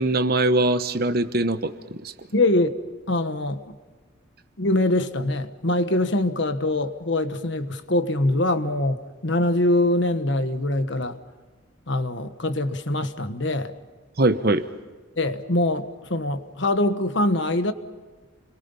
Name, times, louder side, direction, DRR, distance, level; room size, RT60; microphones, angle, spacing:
voice 1, 0.0-2.1 14.2-14.6, right 2 dB, 45° right, 1.1 m, -22 dB
voice 2, 2.3-2.7 3.1-3.8 4.6-11.2 11.9-13.7 15.2-17.7, left 1 dB, 55° left, 1.3 m, -23 dB
30.0 x 23.0 x 5.6 m
head